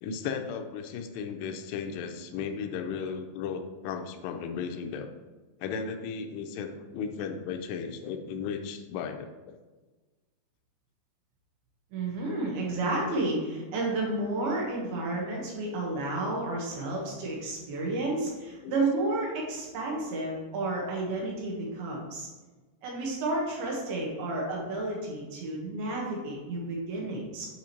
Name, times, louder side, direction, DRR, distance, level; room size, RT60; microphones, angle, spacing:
voice 1, 0.0-5.1 5.6-9.6 18.6-18.8, left 6 dB, 85° left, 6 dB, 2.7 m, -35 dB
voice 2, 11.9-22.3 22.8-27.5, right 2 dB, 70° right, -2 dB, 3.0 m, -31 dB
8.6 x 4.9 x 2.9 m, 1.2 s
omnidirectional pair, 4.8 m